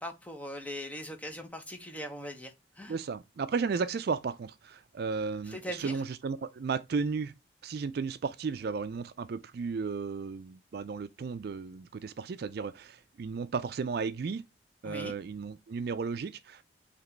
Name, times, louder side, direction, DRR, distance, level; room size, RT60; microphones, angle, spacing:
voice 1, 0.0-3.0 5.5-6.0 14.8-15.1, equal, 10° left, 0.8 m, -40 dB
voice 2, 2.9-7.3 7.6-14.4 14.8-16.6, right 5 dB, 60° right, 0.4 m, -34 dB
4.1 x 2.9 x 4.4 m
head